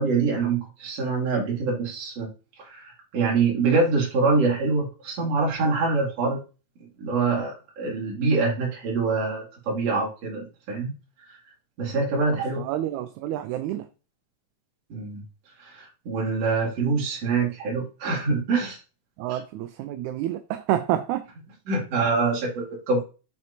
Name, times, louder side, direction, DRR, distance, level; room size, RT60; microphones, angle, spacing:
voice 1, 0.0-2.3 2.6-6.4 7.0-10.9 11.8-12.6 14.9-15.2 15.6-18.8 19.3-19.4 21.7-23.0, right 4 dB, 55° right, 3.3 m, -25 dB
voice 2, 12.3-13.9 19.2-21.3, right 12 dB, 80° right, 1.9 m, -28 dB
7.6 x 6.8 x 2.8 m
omnidirectional pair, 3.6 m